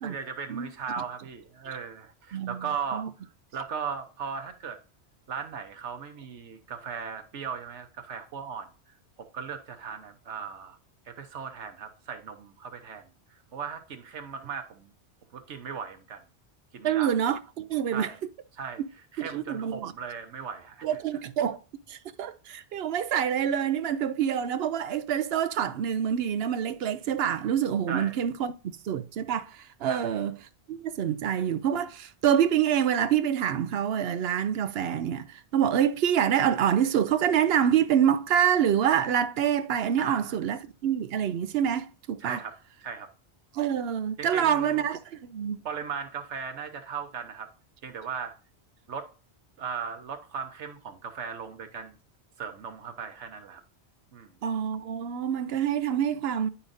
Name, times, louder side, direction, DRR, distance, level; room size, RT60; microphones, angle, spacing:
voice 1, 0.0-3.1 3.5-4.8 5.3-8.7 9.2-10.8 11.1-14.9 15.3-16.2 16.7-17.2 17.9-18.2 18.5-18.8 19.1-20.9 27.9-28.2 29.9-30.1 40.0-40.4 42.2-43.1 44.2-44.8 45.6-47.5 47.8-48.3 48.9-49.1 49.6-51.9 52.4-53.6 54.1-54.3, right 6 dB, 85° right, 1.3 m, -37 dB
voice 2, 16.8-18.1 18.8-18.9 19.2-19.9 20.8-21.6 21.9-30.4 30.7-42.4 43.5-45.6 54.4-56.5, right 9 dB, 65° right, 0.8 m, -26 dB
10.0 x 5.6 x 2.6 m
omnidirectional pair, 1.2 m